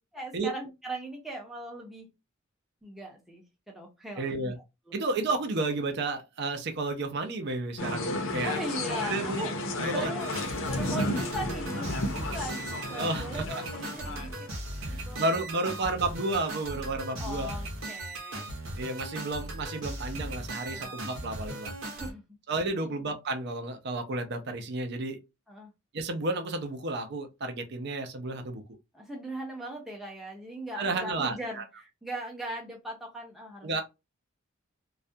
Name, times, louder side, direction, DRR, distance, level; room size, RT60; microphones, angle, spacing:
voice 1, 0.1-2.1 2.8-4.5 4.9-5.0 8.4-10.3 10.6-14.5 14.9-15.2 17.2-18.5 20.7-21.3 21.8-22.2 22.8-23.0 25.5-25.7 28.9-33.8, right 1 dB, ahead, 0.5 m, -39 dB
voice 2, 4.2-4.6 4.9-8.6 9.0-9.5 9.8-10.1 12.9-13.6 14.8-17.5 18.8-21.7 22.5-25.2 25.9-28.6 30.8-31.6 33.6-33.8, right 2 dB, 55° right, 0.5 m, -32 dB
sound 1, 7.8-14.5, left 2 dB, 65° left, 0.6 m, -33 dB
sound 2, 10.2-22.1, right 1 dB, 75° right, 0.8 m, -38 dB
2.3 x 2.1 x 2.6 m
head